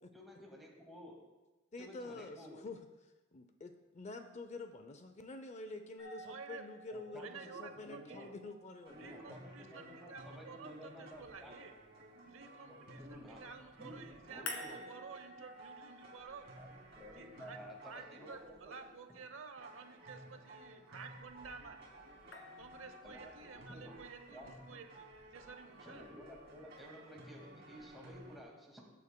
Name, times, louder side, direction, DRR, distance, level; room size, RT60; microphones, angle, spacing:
voice 1, 0.1-1.2 1.8-2.6 6.9-8.4 8.9-11.6 12.7-13.4 13.8-14.9 16.6-16.7 16.9-18.8 23.0-24.0 24.3-24.5 25.8-28.9, equal, ahead, -2 dB, 1.9 m, -53 dB
voice 2, 1.7-2.8 3.3-9.4, left 2 dB, 35° left, 7 dB, 0.5 m, -48 dB
sound 1, 6.0-11.0 14.5-18.6 22.3-23.5, left 1 dB, 70° left, 1.8 m, -52 dB
voice 3, 6.2-6.6 7.2-8.3 9.0-11.7 12.3-16.5 17.2-17.6 17.8-21.8 22.5-26.0, right 5 dB, 85° right, 8 dB, 0.8 m, -52 dB
sound 2, 8.8-28.4, right 1 dB, 55° right, 2.8 m, -56 dB
18.5 x 8.4 x 2.2 m, 1.1 s
head